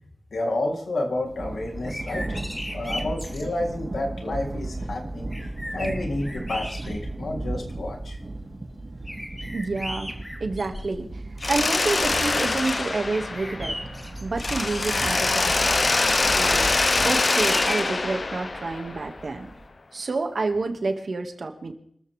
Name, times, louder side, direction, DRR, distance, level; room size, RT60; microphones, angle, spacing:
voice 1, 0.3-2.4 2.7-5.3 5.7-8.2, left 2 dB, 85° left, 0 dB, 3.7 m, -30 dB
Thunder, 1.3-19.7, right 2 dB, 40° right, 4.8 m, -36 dB
sound 1, 1.7-3.5 4.9-5.0 5.3-7.2 7.8-7.9 9.1-11.1 11.5-12.4 13.1-14.2 16.6-18.0, left 1 dB, 15° left, 2.3 m, -37 dB
voice 2, 9.5-10.1 10.4-11.2 11.5-13.8 14.2-16.7 17.0-19.5 19.9-21.7, right 3 dB, 60° right, 4 dB, 2.3 m, -29 dB
Mechanisms, 11.4-14.0 14.4-19.2, left 3 dB, 45° left, 0.7 m, -24 dB
26.5 x 14.0 x 3.7 m, 0.67 s
wide cardioid pair, 80°, 0 cm